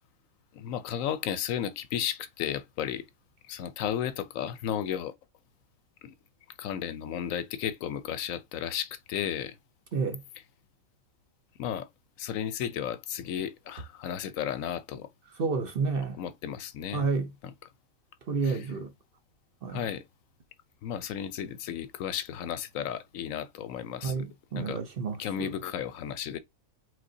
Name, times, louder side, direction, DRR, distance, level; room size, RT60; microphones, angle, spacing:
voice 1, 0.5-3.1 3.5-5.1 6.0-6.1 6.6-9.6 11.6-11.9 12.2-15.1 16.2-17.1 18.4-18.7 19.7-20.0 20.8-24.2 24.6-24.8 25.2-26.4, left 9 dB, 75° left, 0.9 m, -34 dB
voice 2, 9.9-10.2 15.4-16.2 16.9-17.3 18.3-18.9 19.6-19.9 24.0-25.5, right 4 dB, 50° right, 0.8 m, -30 dB
5.2 x 3.8 x 2.7 m
omnidirectional pair, 1.5 m